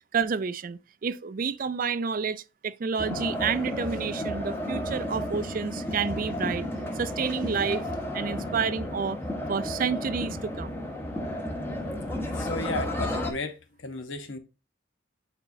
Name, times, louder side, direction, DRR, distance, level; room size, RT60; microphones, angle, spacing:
voice 1, 0.1-6.7 6.9-7.8 8.1-9.2 9.5-10.8, right 6 dB, 40° right, 0.4 m, -29 dB
sound 1, 3.0-13.3, left 1 dB, 10° left, 1.0 m, -32 dB
voice 2, 12.3-14.4, left 2 dB, 65° left, 1.0 m, -34 dB
8.7 x 4.3 x 2.6 m
head